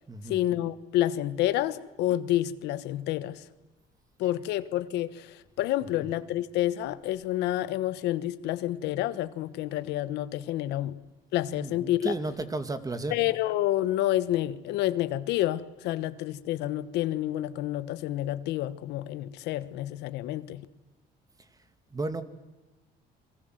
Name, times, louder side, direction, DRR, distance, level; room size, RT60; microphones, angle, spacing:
voice 1, 0.2-3.5 4.2-11.0 11.3-12.2 13.1-20.7, left 14 dB, 90° left, 1.3 m, -29 dB
voice 2, 11.5-13.1 21.9-22.2, right 2 dB, 20° right, 2.4 m, -33 dB
28.0 x 23.5 x 7.9 m
cardioid pair, 110°, 17 cm